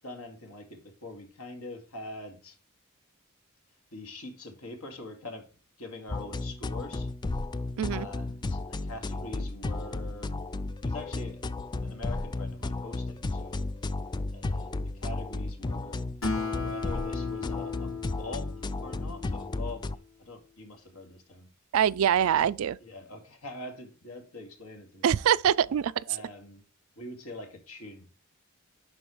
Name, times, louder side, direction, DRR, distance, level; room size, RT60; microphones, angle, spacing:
voice 1, 0.0-2.6 3.9-5.5 5.8-7.1 7.9-10.3 10.8-11.4 11.8-13.7 14.3-16.0 16.5-18.5 18.8-19.9 20.2-21.5 22.2-25.1 25.7-26.6 27.0-28.1, left 2 dB, 85° left, 2.3 m, -44 dB
sound 1, 6.1-20.0, left 2 dB, 20° left, 0.3 m, -34 dB
Acoustic guitar, 16.2-19.9, left 4 dB, 65° left, 2.3 m, -36 dB
voice 2, 21.7-22.8 25.0-25.9, right 9 dB, 70° right, 0.3 m, -24 dB
11.5 x 4.3 x 3.2 m
head